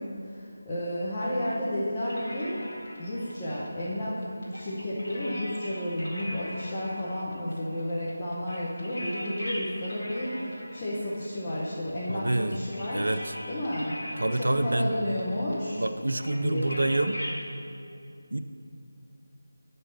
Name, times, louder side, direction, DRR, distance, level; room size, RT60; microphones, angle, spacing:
voice 1, 0.0-2.6 3.0-15.8 16.3-16.8, left 1 dB, 20° left, -10 dB, 1.3 m, -32 dB
sound 1, 2.0-17.4, equal, 50° left, 2.0 m, -42 dB
voice 2, 12.1-12.6 12.9-13.4 14.2-14.9 15.7-17.2 18.3-18.4, right 2 dB, 75° right, 10 dB, 0.5 m, -27 dB
9.7 x 5.5 x 5.7 m, 2.7 s
figure-of-eight pair, 160°, 0 cm